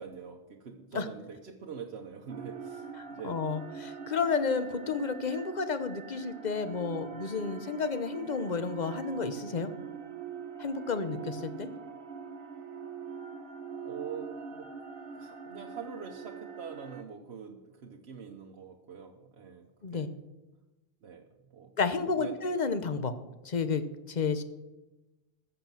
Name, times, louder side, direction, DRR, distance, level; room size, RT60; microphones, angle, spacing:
voice 1, 0.0-3.4 13.8-14.7 15.1-20.1 21.0-21.2 21.5-21.7 22.2-22.4, right 6 dB, 85° right, 1 dB, 1.2 m, -44 dB
sound 1, 2.3-17.0, right 6 dB, 60° right, 1.4 m, -43 dB
voice 2, 3.2-9.7 10.6-11.7 19.8-20.1 21.8-23.1 23.4-24.4, left 5 dB, 45° left, 11 dB, 1.0 m, -31 dB
13.5 x 6.9 x 7.3 m, 1.1 s
omnidirectional pair, 1.1 m